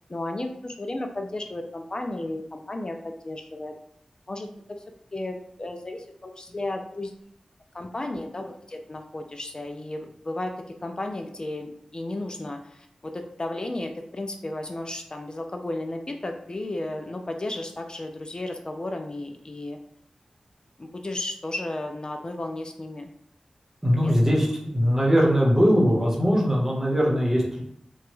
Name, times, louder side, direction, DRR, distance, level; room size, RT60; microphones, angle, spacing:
voice 1, 0.1-3.7 4.3-4.8 5.1-7.1 7.7-10.5 10.8-19.8 20.8-23.1 24.0-24.1, left 2 dB, 40° left, 4 dB, 0.3 m, -34 dB
voice 2, 23.8-27.6, equal, 20° right, -4 dB, 1.1 m, -21 dB
2.9 x 2.2 x 3.1 m, 0.70 s
cardioid pair, 45°, 2 cm